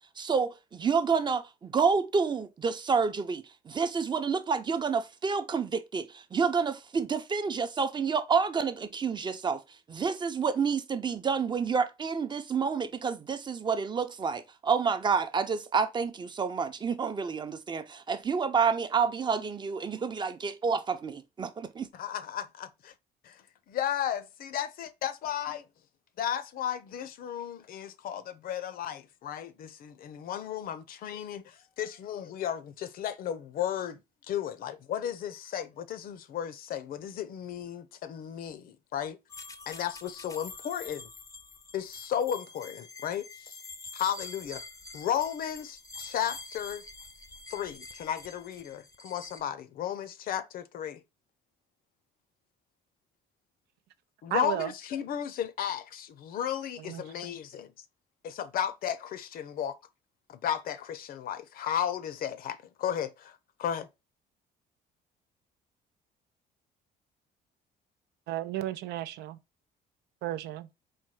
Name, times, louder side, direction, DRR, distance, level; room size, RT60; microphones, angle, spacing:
voice 1, 0.2-9.6 9.9-21.9, right 5 dB, 25° right, 0.6 m, -29 dB
voice 2, 21.9-22.9 23.2-23.4 23.7-25.6 26.2-34.0 34.3-39.2 39.7-41.1 41.7-43.6 43.9-44.6 44.9-46.8 47.5-51.0 54.2-57.7 58.2-59.8 60.3-63.9, left 9 dB, 60° left, 0.6 m, -34 dB
sound 1, 39.3-49.4, left 3 dB, 20° left, 0.5 m, -46 dB
voice 3, 54.3-54.7 56.8-57.0 68.3-69.4 70.2-70.7, right 13 dB, 80° right, 0.5 m, -33 dB
4.3 x 2.2 x 4.7 m
cardioid pair, 110°, 17 cm